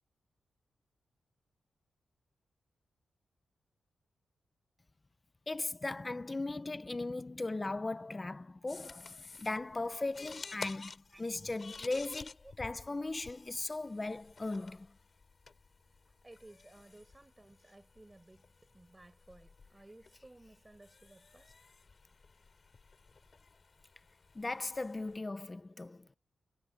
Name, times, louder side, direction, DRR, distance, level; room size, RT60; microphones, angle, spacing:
voice 1, 5.5-14.9 24.3-26.2, left 2 dB, 20° left, 0.7 m, -38 dB
sound 1, 8.7-25.2, left 4 dB, 40° left, 3.8 m, -52 dB
voice 2, 16.2-18.5 18.7-21.6, right 2 dB, 15° right, 7.1 m, -57 dB
wide cardioid pair, 135°, 0 cm